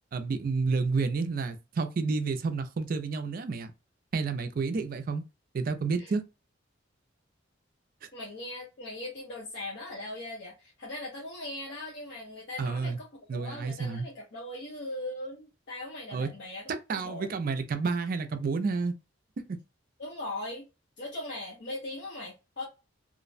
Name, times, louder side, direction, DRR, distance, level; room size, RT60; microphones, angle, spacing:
voice 1, 0.1-3.7 4.1-5.2 5.5-6.2 8.0-8.1 12.6-13.0 13.3-14.1 16.1-16.3 16.7-18.9 19.5-19.6, right 4 dB, 45° right, 0.4 m, -30 dB
voice 2, 8.1-17.3 20.0-20.7 21.0-22.6, left 1 dB, 60° left, 0.7 m, -40 dB
2.5 x 2.0 x 2.4 m
head